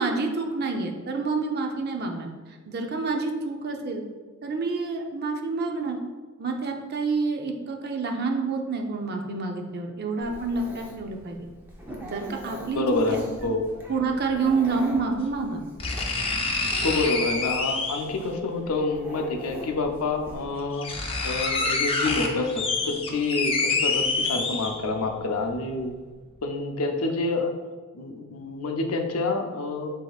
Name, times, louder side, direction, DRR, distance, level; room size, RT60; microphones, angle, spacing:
voice 1, 0.0-2.3 2.7-4.0 4.4-6.0 6.4-11.5 12.0-13.6 13.9-15.6, right 4 dB, 45° right, 3 dB, 0.5 m, -28 dB
Dog, 10.2-20.4, equal, 10° right, 0.7 m, -43 dB
voice 2, 12.7-13.6 16.8-20.9 21.2-25.9 26.4-27.5 27.9-29.9, left 3 dB, 90° left, 4 dB, 0.6 m, -27 dB
sound 1, 13.4-13.5 14.9-15.0 15.8-18.2 19.5-19.6 20.3-20.4 20.6-25.0 25.5-25.6, left 3 dB, 25° left, 0.5 m, -27 dB
7.7 x 2.7 x 2.4 m, 1.4 s
head